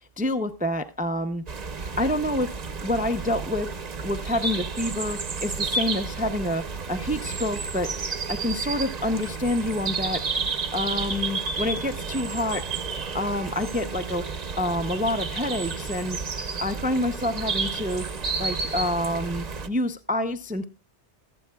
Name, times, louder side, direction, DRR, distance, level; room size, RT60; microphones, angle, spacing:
voice 1, 0.2-1.4 1.8-2.5 2.8-3.7 4.0-7.9 8.3-10.2 10.7-12.6 13.1-14.2 14.6-16.2 16.6-18.0 18.4-20.6, left 1 dB, 10° right, 0.4 m, -27 dB
sound 1, 1.5-19.7, right 4 dB, 40° right, 0.8 m, -31 dB
25.0 x 8.4 x 2.3 m
omnidirectional pair, 1.2 m